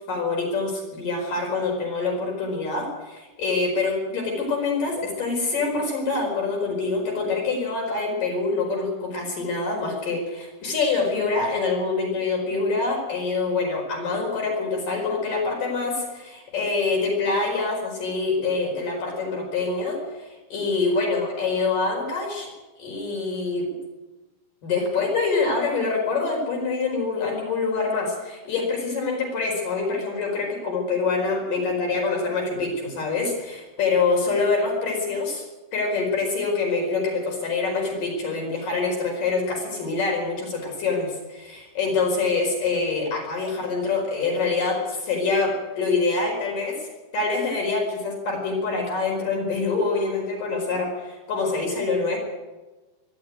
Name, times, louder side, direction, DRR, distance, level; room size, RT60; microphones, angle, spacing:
voice 1, 0.1-20.0 20.5-22.5 22.8-23.7 24.6-35.4 35.7-46.8 47.1-52.2, left 4 dB, 55° left, 0 dB, 6.2 m, -25 dB
23.5 x 12.5 x 9.5 m, 1.2 s
omnidirectional pair, 4.6 m